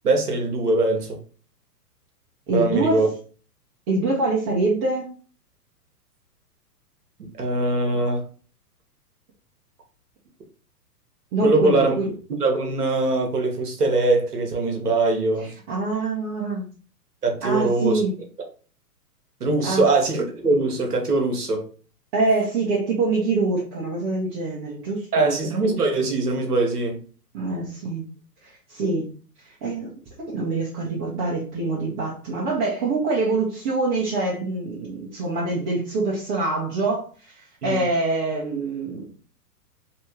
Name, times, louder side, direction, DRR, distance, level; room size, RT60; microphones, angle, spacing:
voice 1, 0.0-1.2 2.5-3.1 7.2-8.2 11.4-11.9 12.3-15.5 17.2-18.0 19.4-21.7 25.1-27.0 37.6-37.8, right 2 dB, 70° right, 1.3 m, -22 dB
voice 2, 2.5-3.1 3.9-5.1 11.3-12.1 15.4-16.6 17.4-18.1 19.6-19.9 22.1-25.4 27.3-28.0 28.4-29.1 29.6-29.9 30.3-39.1, right 3 dB, 30° right, 1.0 m, -25 dB
3.3 x 2.9 x 3.1 m
figure-of-eight pair, 110°, 48 cm